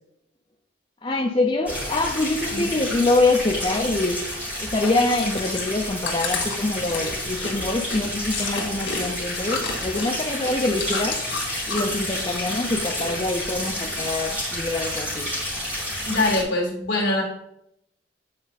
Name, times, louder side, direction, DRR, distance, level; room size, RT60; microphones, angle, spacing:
voice 1, 1.0-4.2 4.6-11.2 11.7-15.3, left 2 dB, 25° left, 0 dB, 0.6 m, -25 dB
sound 1, 1.7-16.4, left 1 dB, 10° right, 3.1 m, -30 dB
Chewing mastication, 5.0-12.1 12.4-13.1 13.4-14.3 14.8-14.9, left 4 dB, 85° left, 2.1 m, -32 dB
voice 2, 16.1-17.2, left 2 dB, 65° left, -1 dB, 2.2 m, -23 dB
8.8 x 4.4 x 4.0 m, 0.76 s
head